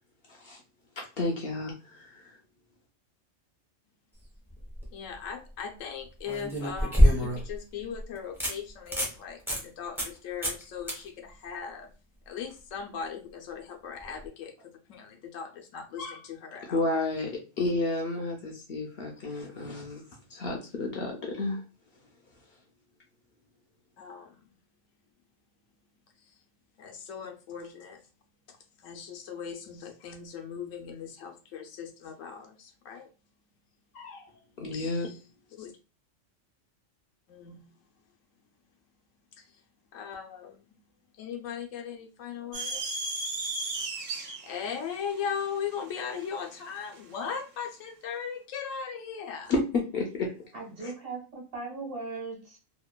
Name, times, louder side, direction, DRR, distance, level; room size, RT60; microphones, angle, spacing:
voice 1, 0.3-0.6 1.0-2.3 16.7-20.0 20.3-21.6 34.6-35.1 49.5-49.6 49.9-50.3 50.8-50.9, left 2 dB, 60° left, 0.7 m, -31 dB
sound 1, 4.5-4.9 6.3-7.6 8.0-8.1 8.4-8.5 8.9-9.1 9.5-9.6 10.0-10.2 10.4-10.6 10.9-11.0 14.1-14.2, equal, 5° right, 0.5 m, -24 dB
voice 2, 4.9-11.9 12.3-16.9 24.0-24.3 26.8-28.0 28.5-33.1 33.9-34.3 34.7-35.2 35.6-35.8 37.3-37.7 39.4-39.5 39.9-40.8 41.1-43.1 44.2-49.5, left 7 dB, 85° left, 1.0 m, -39 dB
sound 2, 42.5-47.0, right 3 dB, 80° right, 1.1 m, -35 dB
voice 3, 50.5-52.6, right 3 dB, 50° right, 1.2 m, -38 dB
2.8 x 2.2 x 2.2 m
omnidirectional pair, 1.3 m